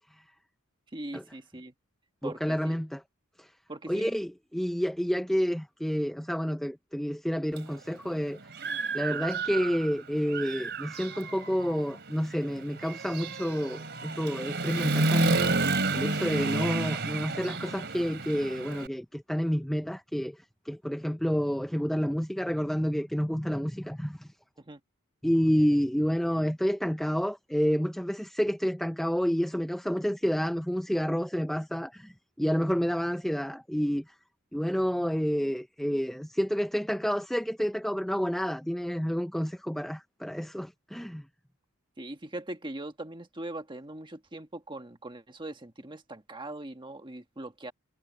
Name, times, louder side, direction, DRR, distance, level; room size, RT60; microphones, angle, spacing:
voice 1, 0.9-1.7 2.2-2.8 3.7-4.1 9.1-9.3 24.6-24.8 42.0-47.7, right 1 dB, 20° right, 1.5 m, -41 dB
voice 2, 2.2-3.0 3.4-3.5 3.9-8.4 8.9-15.6 15.9-24.3 25.2-34.1 34.5-41.3, equal, ahead, 0.5 m, -29 dB
Human voice / Motorcycle, 7.6-7.7 8.2-9.9 10.3-18.9, right 3 dB, 50° right, 3.0 m, -31 dB
head